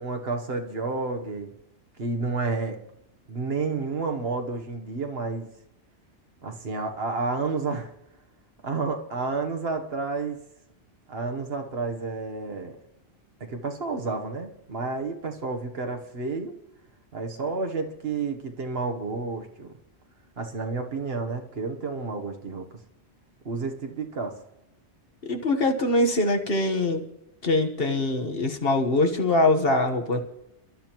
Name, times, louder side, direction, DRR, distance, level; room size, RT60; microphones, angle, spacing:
voice 1, 0.0-1.5 2.0-2.8 3.3-5.5 6.4-7.9 8.6-10.4 11.1-12.8 13.4-16.5 17.1-19.7 20.4-22.7 23.4-24.4, right 4 dB, 55° right, 5 dB, 1.3 m, -30 dB
voice 2, 25.2-27.0 27.4-30.2, left 2 dB, 50° left, 4 dB, 1.4 m, -23 dB
29.5 x 12.0 x 3.0 m, 0.83 s
omnidirectional pair, 1.2 m